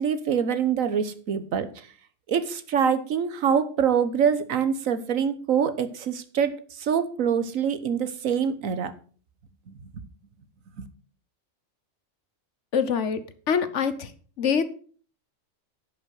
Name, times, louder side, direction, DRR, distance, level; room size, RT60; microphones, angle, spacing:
voice 1, 0.0-1.7 2.3-6.5 6.8-8.9 10.8-10.9, right 7 dB, 85° right, 11 dB, 1.5 m, -25 dB
voice 2, 12.7-13.2 13.5-14.1 14.4-14.6, left 6 dB, 65° left, 12 dB, 1.2 m, -24 dB
10.5 x 5.8 x 6.4 m, 0.43 s
omnidirectional pair, 1.4 m